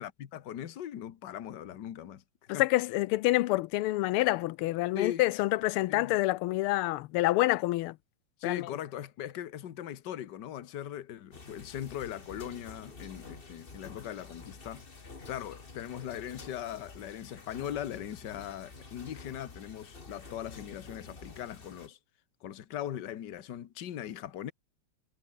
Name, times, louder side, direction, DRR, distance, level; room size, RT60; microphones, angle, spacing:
voice 1, 0.0-2.2 2.5-2.6 4.9-5.2 5.9-6.1 8.4-14.8 15.3-22.0 22.4-24.5, left 11 dB, 55° left, 1.7 m, -39 dB
voice 2, 2.5-8.0 8.4-8.7, left 18 dB, 85° left, 1.5 m, -27 dB
sound 1, 11.3-21.9, left 3 dB, 25° left, 2.1 m, -49 dB
omnidirectional pair, 2.4 m